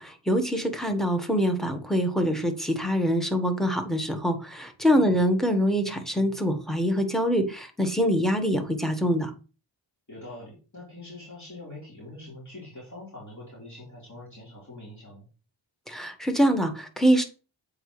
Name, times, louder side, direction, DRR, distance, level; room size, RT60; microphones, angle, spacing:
voice 1, 0.0-9.3 15.9-17.2, equal, ahead, 6 dB, 1.4 m, -24 dB
voice 2, 10.1-15.3, left 2 dB, 35° left, -6 dB, 3.6 m, -44 dB
7.8 x 5.1 x 3.2 m, 0.34 s
wide cardioid pair, 95°, 48 cm